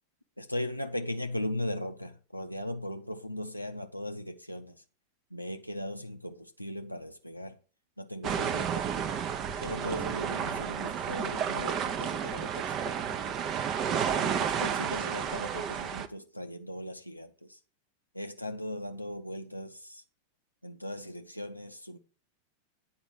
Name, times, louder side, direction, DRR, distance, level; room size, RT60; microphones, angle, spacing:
voice 1, 0.4-4.8 5.3-7.6 8.0-8.9 9.6-13.3 13.9-17.6 18.1-20.0 20.6-22.0, left 1 dB, 90° left, 0.5 m, -38 dB
sound 1, 8.2-16.1, right 8 dB, 35° right, 0.7 m, -31 dB
9.0 x 4.3 x 7.2 m
figure-of-eight pair, 90°, 0 cm